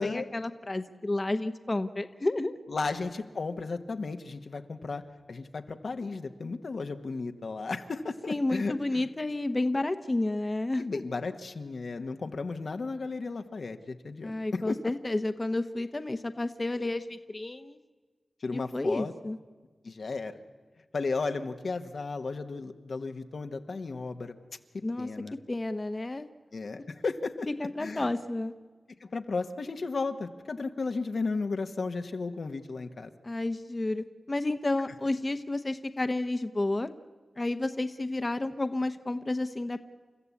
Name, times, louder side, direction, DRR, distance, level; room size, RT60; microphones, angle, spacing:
voice 1, 0.0-2.6 8.3-11.0 14.2-17.8 18.5-19.4 24.8-25.1 25.5-26.3 27.5-28.5 33.2-36.9 37.4-39.8, left 2 dB, 30° left, 9 dB, 0.9 m, -31 dB
voice 2, 2.7-5.0 5.3-9.0 10.8-14.8 18.4-19.1 19.8-20.3 20.9-24.3 25.0-25.3 26.5-27.5 27.8-28.1 29.0-33.1, left 4 dB, 75° left, 6 dB, 1.2 m, -34 dB
29.5 x 14.0 x 8.4 m, 1.4 s
wide cardioid pair, 90°, 0 cm